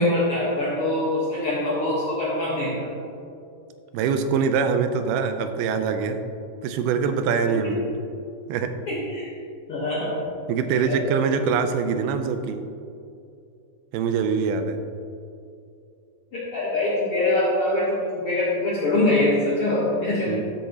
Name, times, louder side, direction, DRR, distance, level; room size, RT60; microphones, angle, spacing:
voice 1, 0.0-2.9 7.5-7.7 8.9-9.3 9.7-10.1 10.9-11.1 16.3-20.4, left 1 dB, 65° left, -6 dB, 1.4 m, -24 dB
voice 2, 3.9-6.2 6.6-7.8 8.5-8.8 10.5-12.6 13.9-14.8 20.3-20.4, right 6 dB, 90° right, 8 dB, 2.5 m, -24 dB
13.0 x 7.1 x 2.9 m, 2.6 s
omnidirectional pair, 4.3 m